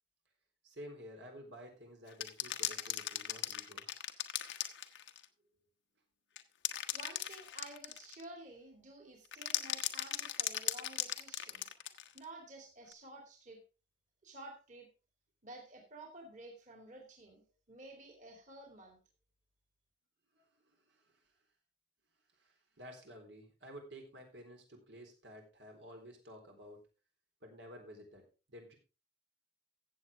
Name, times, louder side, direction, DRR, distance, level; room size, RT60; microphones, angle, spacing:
voice 1, 0.6-3.8 20.4-21.1 22.4-26.8 27.4-28.7, equal, 80° right, 2 dB, 3.8 m, -52 dB
sound 1, 2.1-5.3 6.4-8.2 9.3-12.2 12.9-13.0, left 12 dB, 85° left, 1.1 m, -38 dB
voice 2, 6.9-11.7 12.1-13.6 14.2-14.9 15.4-19.0, right 2 dB, 40° right, 2 dB, 2.6 m, -52 dB
15.0 x 7.9 x 3.6 m, 0.31 s
head